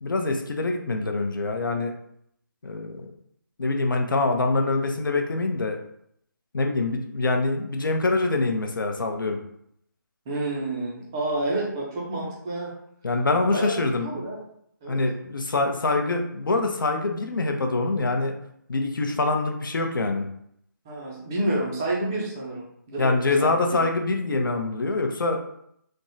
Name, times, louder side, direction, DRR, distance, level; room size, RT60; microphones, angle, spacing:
voice 1, 0.0-1.9 2.6-3.1 3.6-5.8 6.5-9.4 13.0-14.2 14.9-18.4 18.7-20.3 23.0-25.4, left 3 dB, 75° left, 4 dB, 0.6 m, -25 dB
voice 2, 10.3-12.7 13.5-14.4 14.8-15.0 20.9-23.1 23.4-23.5, right 1 dB, 10° right, -4 dB, 0.3 m, -29 dB
3.4 x 2.0 x 2.7 m, 0.71 s
figure-of-eight pair, 165°, 11 cm